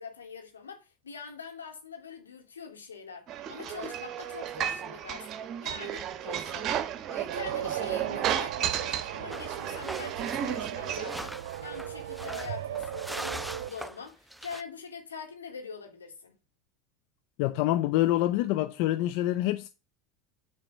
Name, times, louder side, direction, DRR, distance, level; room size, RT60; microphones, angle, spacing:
voice 1, 0.0-5.3 5.6-6.7 7.0-16.3, left 5 dB, 90° left, 2.4 m, -43 dB
sound 1, 3.3-11.2, right 10 dB, 45° right, 1.1 m, -33 dB
sound 2, 7.3-13.7, right 13 dB, 75° right, 0.3 m, -37 dB
sound 3, 9.3-14.6, right 1 dB, 5° right, 0.5 m, -41 dB
voice 2, 17.4-19.7, left 15 dB, 60° left, 0.6 m, -26 dB
8.9 x 4.4 x 6.4 m
hypercardioid pair, 85°, 0 cm